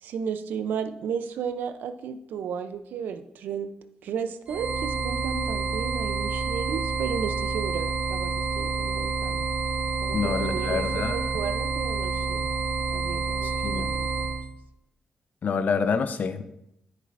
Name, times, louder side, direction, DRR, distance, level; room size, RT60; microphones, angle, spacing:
voice 1, 0.0-3.7 4.0-9.5 10.0-12.5 12.9-14.4, right 7 dB, 85° right, 10 dB, 0.6 m, -34 dB
sound 1, 4.5-14.4, right 4 dB, 40° right, 1.5 m, -28 dB
voice 2, 10.1-11.4 13.6-13.9 15.4-16.4, left 5 dB, 65° left, 10 dB, 0.7 m, -27 dB
10.0 x 8.2 x 2.6 m, 0.80 s
cardioid pair, 55°, 3 cm